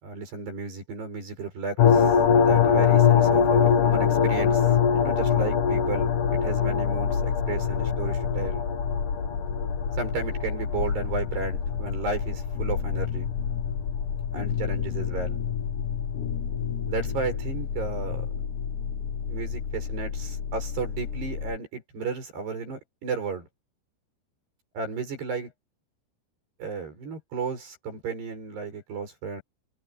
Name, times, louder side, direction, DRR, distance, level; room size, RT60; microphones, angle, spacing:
voice 1, 0.0-8.7 10.0-13.3 14.3-15.4 16.9-18.3 19.3-23.5 24.8-25.5 26.6-29.4, right 4 dB, 55° right, 8.8 m, -33 dB
sound 1, 1.8-21.6, left 7 dB, 55° left, 2.6 m, -24 dB
omnidirectional pair, 5.5 m